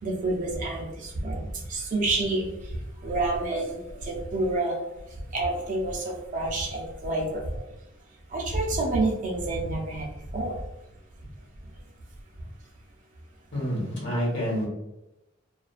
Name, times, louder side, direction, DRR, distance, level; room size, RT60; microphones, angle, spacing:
voice 1, 0.0-2.5 3.0-4.8 5.3-7.4 8.3-10.1 10.3-10.6, right 2 dB, 40° right, -1 dB, 0.5 m, -28 dB
voice 2, 13.5-14.7, equal, 55° left, -4 dB, 1.1 m, -28 dB
2.4 x 2.2 x 2.3 m, 0.92 s
head